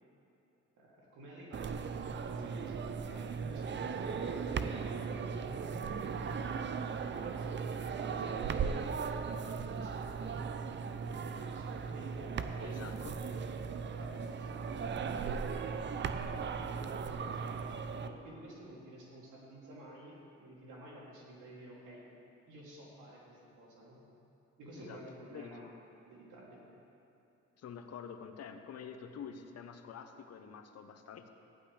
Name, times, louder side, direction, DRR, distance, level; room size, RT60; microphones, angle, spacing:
voice 1, 0.8-8.4 8.7-10.5 10.9-12.4 12.7-13.2 13.7-16.9 17.2-22.0 22.5-24.0 24.6-25.6 26.0-26.6, right 1 dB, 80° right, -4 dB, 2.8 m, -52 dB
sound 1, 1.5-18.1, right 6 dB, 40° right, 0.5 m, -37 dB
voice 2, 12.6-13.2 24.8-25.0 25.3-25.6 27.6-31.3, left 7 dB, 55° left, 7 dB, 0.9 m, -47 dB
14.5 x 10.0 x 3.3 m, 2.9 s
cardioid pair, 90°, 30 cm